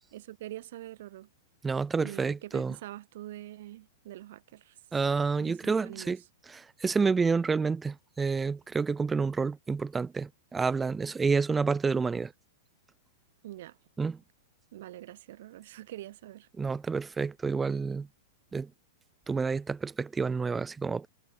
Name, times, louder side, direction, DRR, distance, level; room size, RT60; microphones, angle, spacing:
voice 1, 0.1-1.3 2.0-4.8 5.4-6.2 13.4-13.8 14.7-16.5, right 14 dB, 60° right, 2.3 m, -44 dB
voice 2, 1.6-2.7 4.9-6.2 6.5-12.3 14.0-14.2 16.6-18.1 18.5-18.7 19.3-21.1, right 4 dB, 10° right, 0.6 m, -29 dB
supercardioid pair, 155°, 0 cm